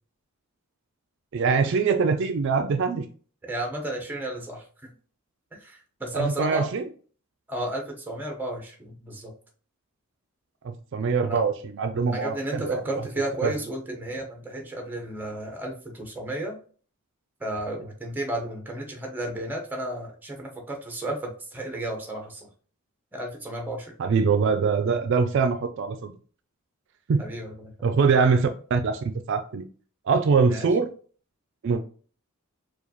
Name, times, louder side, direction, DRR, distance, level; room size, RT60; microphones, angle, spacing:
voice 1, 1.3-3.1 6.1-6.8 10.6-12.8 13.4-13.5 24.0-26.1 27.1-27.2 27.8-29.7 30.1-30.9 31.6-31.8, right 5 dB, 55° right, 7 dB, 0.3 m, -23 dB
voice 2, 3.4-4.9 5.5-6.7 7.5-9.3 11.2-11.4 12.1-16.6 17.4-22.5 23.1-23.9 27.2-27.9 30.3-30.7, right 1 dB, 10° right, 2 dB, 0.7 m, -33 dB
4.7 x 2.3 x 2.8 m, 0.42 s
head